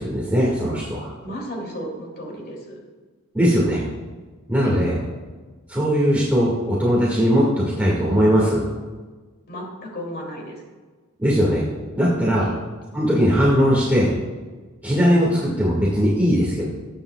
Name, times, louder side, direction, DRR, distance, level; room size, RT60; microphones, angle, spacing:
voice 1, 0.0-1.1 3.3-3.8 4.5-5.0 5.7-7.4 7.8-8.6 11.2-11.6 12.0-12.5 12.9-14.1 14.8-16.6, equal, 5° right, -6 dB, 1.9 m, -19 dB
voice 2, 1.2-2.8 4.6-4.8 9.5-10.6 12.4-12.6, equal, 45° left, -1 dB, 2.9 m, -33 dB
19.5 x 8.7 x 2.4 m, 1.3 s
head